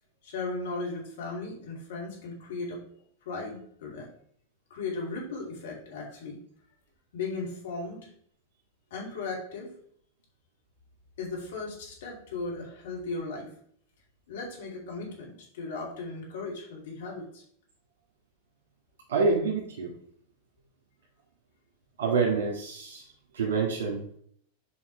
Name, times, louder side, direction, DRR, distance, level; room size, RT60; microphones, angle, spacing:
voice 1, 0.2-2.8 3.2-4.1 4.7-6.4 7.1-8.0 8.9-9.7 11.2-13.5 14.3-17.4, left 3 dB, 60° left, -2 dB, 2.6 m, -36 dB
voice 2, 19.1-19.9 22.0-23.0 23.3-24.1, right 4 dB, 55° right, -2 dB, 1.7 m, -27 dB
8.3 x 5.0 x 3.2 m, 0.64 s
figure-of-eight pair, 90°, 0 cm